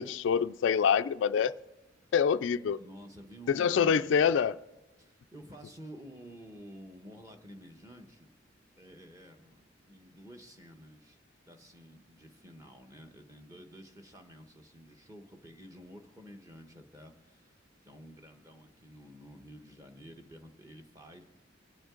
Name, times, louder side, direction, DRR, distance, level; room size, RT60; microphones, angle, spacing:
voice 1, 0.0-1.5 2.1-2.8 3.5-4.5, left 7 dB, 70° left, 0.3 m, -26 dB
voice 2, 2.8-4.3 5.0-8.3 8.7-9.6 9.9-11.2 11.4-21.2, equal, 15° right, 1.1 m, -51 dB
23.5 x 8.7 x 3.8 m
head